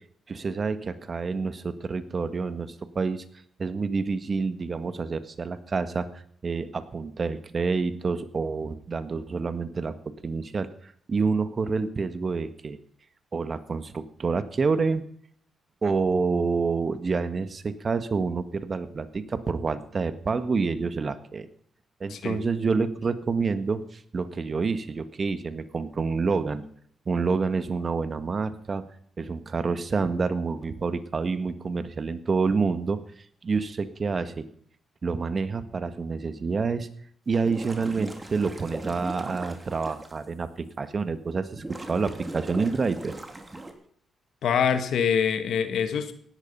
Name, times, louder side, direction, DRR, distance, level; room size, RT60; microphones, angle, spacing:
voice 1, 0.3-3.2 3.6-10.0 10.2-12.8 13.3-15.0 15.8-21.5 22.0-26.6 27.0-28.8 29.2-33.0 33.4-34.4 35.0-36.9 37.3-40.5 40.8-43.1, right 4 dB, 45° right, 11 dB, 1.6 m, -28 dB
voice 2, 22.1-22.4 44.4-46.1, left 7 dB, 70° left, 9 dB, 1.7 m, -25 dB
sound 1, 37.3-40.1 40.7-40.8 41.5-43.7, right 2 dB, 25° right, 3.2 m, -39 dB
16.5 x 11.0 x 5.5 m, 0.63 s
supercardioid pair, 50°, 0 cm